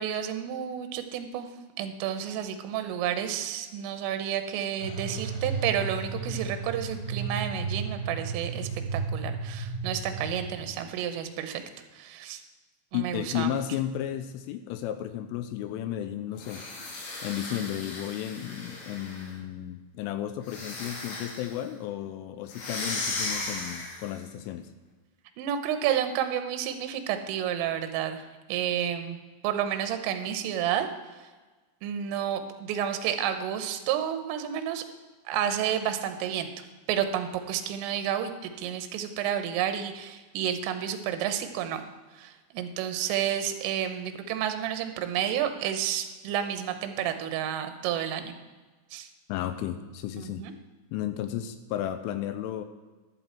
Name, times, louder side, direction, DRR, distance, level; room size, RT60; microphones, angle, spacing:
voice 1, 0.0-1.5 1.8-11.6 11.9-12.4 12.9-13.5 25.4-28.2 28.5-29.2 29.4-30.9 31.8-34.8 35.3-36.5 36.9-41.8 42.2-48.4 48.9-49.1 50.2-50.5, right 10 dB, 80° right, 8 dB, 3.4 m, -30 dB
sound 1, 4.8-10.5, right 4 dB, 30° left, 2.1 m, -33 dB
voice 2, 12.9-16.7 17.2-24.7 49.3-50.5 50.9-52.7, left 11 dB, 85° left, 10 dB, 3.0 m, -33 dB
sound 2, 16.4-19.3 20.4-21.6 22.5-24.2, left 2 dB, 65° left, 4.9 m, -36 dB
11.5 x 11.0 x 4.5 m, 1.3 s
omnidirectional pair, 5.9 m